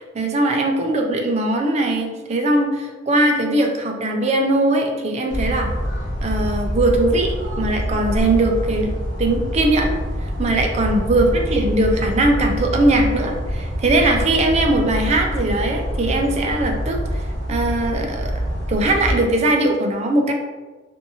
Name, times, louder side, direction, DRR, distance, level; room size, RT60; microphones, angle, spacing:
voice 1, 0.0-5.7 6.2-8.9 9.2-18.3 18.7-20.3, right 1 dB, 35° right, 3 dB, 0.4 m, -20 dB
sound 1, 5.3-19.1, equal, 85° right, 0.8 m, -25 dB
2.6 x 2.5 x 2.7 m, 1.3 s
head